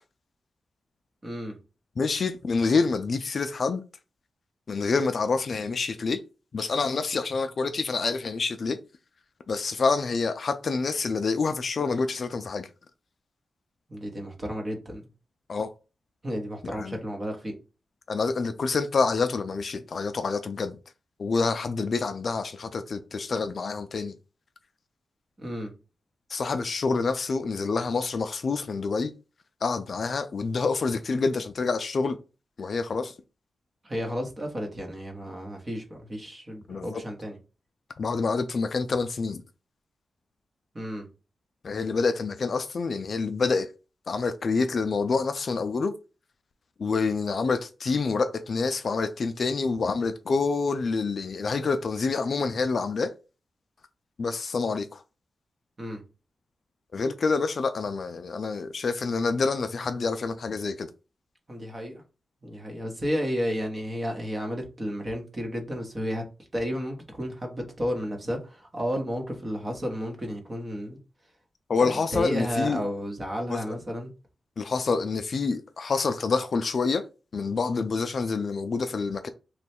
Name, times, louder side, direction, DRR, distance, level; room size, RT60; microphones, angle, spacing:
voice 1, 1.2-1.6 13.9-15.0 16.2-17.5 25.4-25.7 33.8-37.4 40.7-41.1 55.8-56.0 61.5-62.0 62.4-66.2 66.5-71.0 71.8-74.1, equal, 25° right, 0.9 m, -32 dB
voice 2, 2.0-3.8 4.7-6.2 6.5-8.8 9.5-12.7 15.5-15.7 16.6-17.0 18.1-20.8 21.2-24.1 26.3-29.1 29.6-32.2 32.6-33.1 36.7-37.0 38.0-39.4 41.6-43.7 44.1-45.9 46.8-53.1 54.2-55.0 56.9-60.9 71.7-72.8 73.5-73.6 74.6-77.0 77.3-79.3, left 4 dB, 45° left, 0.3 m, -27 dB
3.1 x 2.3 x 4.2 m
wide cardioid pair, 155°, 0 cm